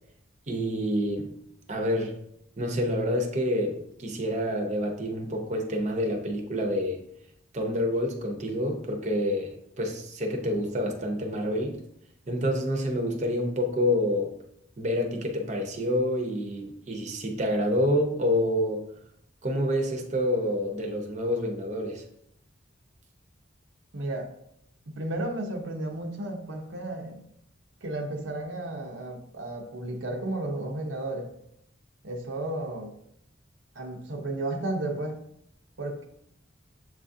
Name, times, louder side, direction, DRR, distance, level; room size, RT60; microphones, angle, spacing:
voice 1, 0.5-1.3 1.7-2.1 2.6-7.0 7.5-11.8 12.3-14.3 14.8-18.8 19.4-22.0, equal, 40° right, 2 dB, 0.7 m, -28 dB
voice 2, 23.9-24.3 24.9-27.2 27.8-31.3 32.0-32.9 33.7-35.2 35.8-36.1, right 2 dB, 80° right, 3 dB, 0.7 m, -33 dB
7.4 x 2.5 x 2.6 m, 0.75 s
head